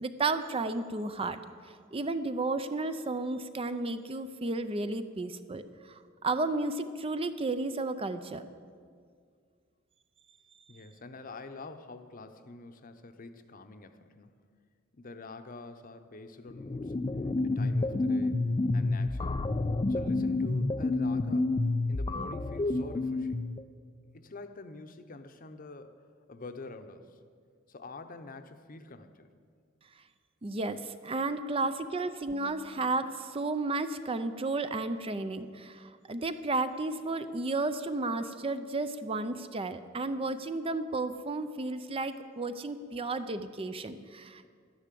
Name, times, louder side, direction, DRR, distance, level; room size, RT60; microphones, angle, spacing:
voice 1, 0.0-1.4 1.9-5.6 6.2-8.4 30.4-44.5, right 3 dB, 30° right, 11 dB, 0.5 m, -33 dB
voice 2, 10.7-14.4 14.9-16.9 17.4-18.5 18.7-19.5 19.9-21.5 21.8-23.4 24.1-26.0 26.3-27.2 27.7-29.3, left 3 dB, 45° left, 9 dB, 0.8 m, -46 dB
sound 1, 16.5-23.6, left 2 dB, 25° left, 0.4 m, -29 dB
12.0 x 10.5 x 7.5 m, 2.1 s
head